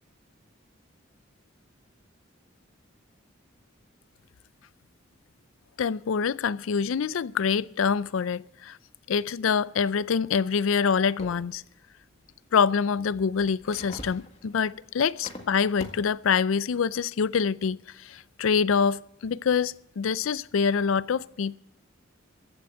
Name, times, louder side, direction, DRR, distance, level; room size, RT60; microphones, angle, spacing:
voice 1, 5.8-8.8 9.1-11.6 12.5-21.5, left 6 dB, 90° left, 0.4 m, -25 dB
sound 1, 11.2-11.6 13.0-16.2, left 1 dB, 30° left, 1.8 m, -44 dB
15.0 x 7.9 x 8.5 m
head